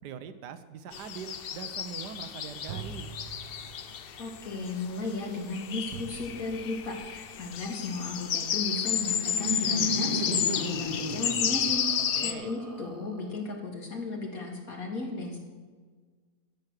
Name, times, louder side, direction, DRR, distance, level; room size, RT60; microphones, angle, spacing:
voice 1, 0.0-3.1 12.0-12.5, right 7 dB, 90° right, 11 dB, 1.4 m, -42 dB
sound 1, 0.9-12.3, left 8 dB, 75° left, 0.5 m, -32 dB
sound 2, 1.4-2.3 2.7-7.6, right 6 dB, 60° right, 1.2 m, -45 dB
voice 2, 4.2-15.4, left 2 dB, 60° left, 0 dB, 2.6 m, -35 dB
Laughter, 8.5-13.5, equal, 25° right, 1.0 m, -35 dB
13.0 x 8.5 x 6.4 m, 1.5 s
omnidirectional pair, 1.7 m